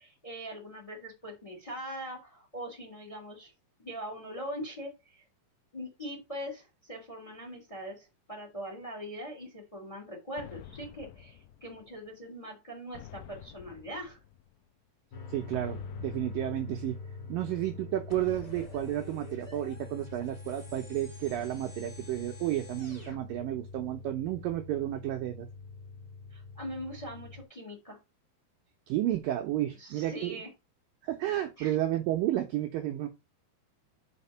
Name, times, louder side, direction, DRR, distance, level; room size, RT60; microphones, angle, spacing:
voice 1, 0.0-3.5 3.8-5.2 5.7-14.2 26.3-28.0 29.8-30.5 31.6-31.7, equal, 10° left, 2.2 m, -42 dB
sound 1, 10.4-12.1 12.9-14.7 15.5-17.3 18.1-19.9, left 10 dB, 80° left, 2.1 m, -50 dB
sound 2, 15.1-27.4, left 4 dB, 60° left, 3.0 m, -44 dB
voice 2, 15.3-17.0 17.3-25.5 28.9-30.4 31.0-33.1, right 13 dB, 75° right, 2.1 m, -32 dB
sound 3, 18.1-23.2, left 1 dB, 30° left, 0.6 m, -52 dB
5.8 x 5.2 x 5.5 m
omnidirectional pair, 4.7 m